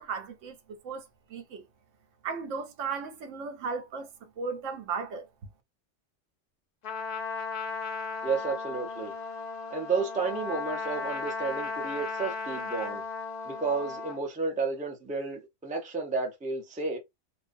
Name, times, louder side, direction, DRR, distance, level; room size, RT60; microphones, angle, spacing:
voice 1, 0.0-1.6 2.2-5.3, right 5 dB, 90° right, 1.0 m, -36 dB
Trumpet, 6.8-14.2, left 4 dB, 55° left, 0.5 m, -36 dB
voice 2, 8.2-9.1 9.7-13.0 13.5-17.0, right 4 dB, 15° right, 0.3 m, -32 dB
2.5 x 2.0 x 2.5 m
omnidirectional pair, 1.2 m